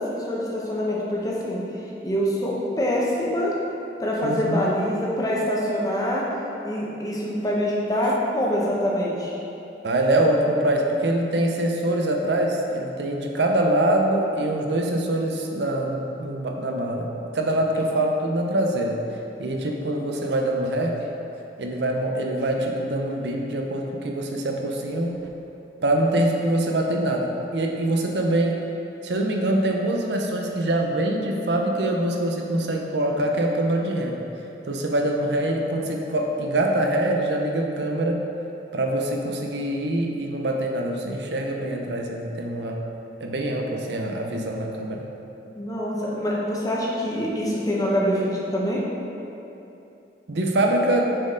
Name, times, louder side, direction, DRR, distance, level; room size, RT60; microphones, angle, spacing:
voice 1, 0.0-1.6 2.0-3.5 4.0-6.2 6.6-9.3 45.6-48.8, equal, 20° left, -4 dB, 0.9 m, -25 dB
voice 2, 4.2-4.8 9.8-19.1 19.4-21.0 21.6-25.2 25.8-28.6 29.0-34.2 34.6-38.2 38.7-42.8 43.2-45.1 50.3-51.1, right 1 dB, 75° right, 2 dB, 0.6 m, -24 dB
6.4 x 4.4 x 3.7 m, 2.9 s
head